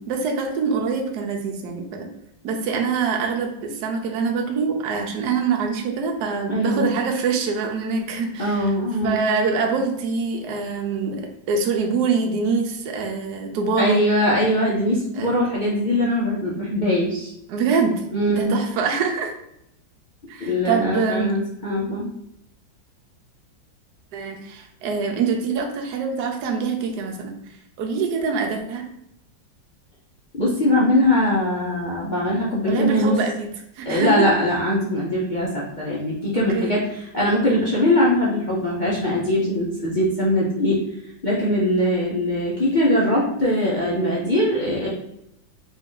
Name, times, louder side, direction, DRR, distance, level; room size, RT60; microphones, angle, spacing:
voice 1, 0.1-2.1 2.4-8.7 9.0-14.0 15.1-15.3 17.5-17.9 18.3-19.3 20.3-21.3 24.1-27.3 27.8-28.9 32.6-33.5 33.8-34.3 36.5-36.7, right 5 dB, 70° right, 2 dB, 1.1 m, -24 dB
voice 2, 6.5-6.9 8.4-9.2 13.8-17.3 18.1-18.5 20.4-22.1 30.3-33.1 33.9-40.8 41.2-44.9, left 1 dB, 60° left, -6 dB, 0.5 m, -21 dB
3.7 x 2.6 x 3.7 m, 0.79 s
omnidirectional pair, 2.0 m